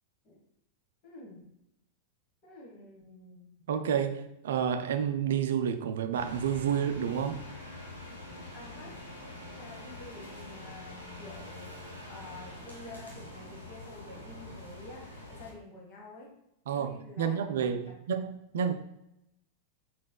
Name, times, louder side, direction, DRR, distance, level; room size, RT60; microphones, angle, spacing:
voice 1, 1.0-1.4 2.4-3.5 8.5-16.3 16.7-17.4 17.8-17.9, left 2 dB, 40° left, -1 dB, 1.4 m, -49 dB
voice 2, 3.7-7.4 16.7-18.7, right 8 dB, 60° right, 9 dB, 0.3 m, -30 dB
sound 1, 6.1-15.5, left 2 dB, 85° left, 0.9 m, -45 dB
4.0 x 4.0 x 2.2 m, 0.84 s
figure-of-eight pair, 90°, 0 cm